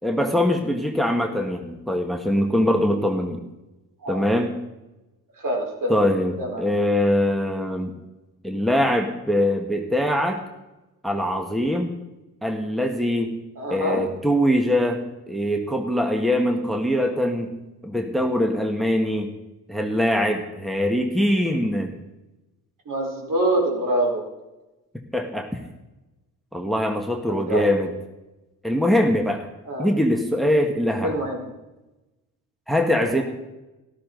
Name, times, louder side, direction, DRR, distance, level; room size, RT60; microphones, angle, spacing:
voice 1, 0.0-3.4 4.1-4.6 5.9-7.9 8.4-10.4 11.0-12.0 12.4-13.4 13.7-17.6 17.8-19.3 19.7-22.0 25.1-25.6 26.5-27.9 28.6-29.5 29.8-31.2 32.7-33.2, left 1 dB, ahead, 3 dB, 1.6 m, -22 dB
voice 2, 5.4-5.9 6.4-6.6 13.6-14.0 22.9-24.2 27.5-27.6 29.7-29.9 31.0-31.5 33.0-33.1, right 1 dB, 55° right, -1 dB, 4.5 m, -25 dB
13.0 x 13.0 x 4.0 m, 1.0 s
supercardioid pair, 50°, 39 cm